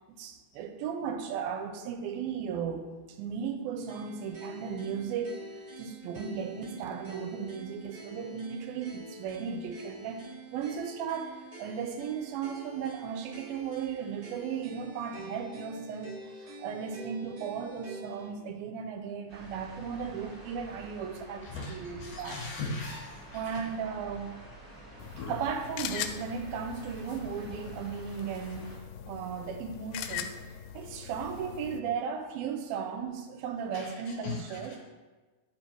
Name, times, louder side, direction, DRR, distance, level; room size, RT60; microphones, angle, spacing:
voice 1, 0.2-5.4 5.8-10.2 10.5-22.4 23.3-24.4 25.3-28.7 29.1-30.3 30.7-34.8, right 7 dB, 80° right, 6 dB, 2.4 m, -36 dB
sound 1, 3.9-18.3, right 2 dB, 65° right, 0.9 m, -47 dB
sound 2, 19.3-28.8, right 1 dB, 15° right, 1.2 m, -49 dB
voice 2, 21.4-23.7 25.0-25.4 33.7-34.8, left 3 dB, 70° left, -1 dB, 2.0 m, -39 dB
sound 3, 25.0-31.8, left 9 dB, 90° left, 2.5 m, -41 dB
9.9 x 5.2 x 4.5 m, 1.3 s
omnidirectional pair, 4.4 m